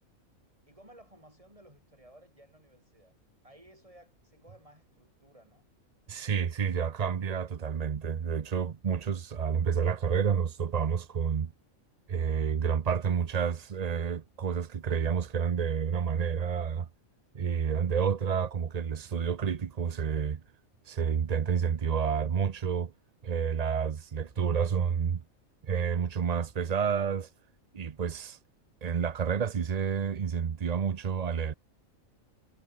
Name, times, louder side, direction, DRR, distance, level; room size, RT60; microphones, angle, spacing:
voice 1, 0.7-3.1 3.4-5.7, right 1 dB, 25° right, 6.3 m, -57 dB
voice 2, 6.1-11.5 12.1-16.9 17.3-20.4 20.8-22.9 23.2-25.2 25.6-27.3 27.7-28.4 28.8-31.5, right 7 dB, 40° right, 0.6 m, -29 dB
omnidirectional pair, 1.4 m